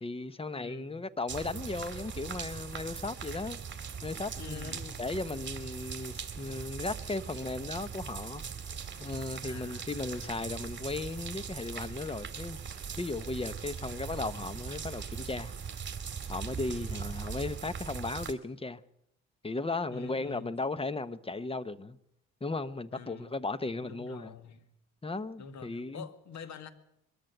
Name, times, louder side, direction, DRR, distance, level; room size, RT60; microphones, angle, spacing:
voice 1, 0.0-3.6 4.0-8.4 9.0-12.6 13.0-15.5 16.3-18.8 19.4-22.0 22.4-24.3 25.0-26.1, left 3 dB, 20° left, 1.0 m, -36 dB
voice 2, 0.6-1.0 4.4-5.0 9.4-10.5 16.6-17.0 19.9-20.5 22.9-23.4 23.8-24.6 25.4-26.7, left 6 dB, 65° left, 2.1 m, -47 dB
sound 1, 1.3-18.3, right 6 dB, 40° right, 2.3 m, -40 dB
22.0 x 13.5 x 9.1 m
cardioid pair, 90°, 30 cm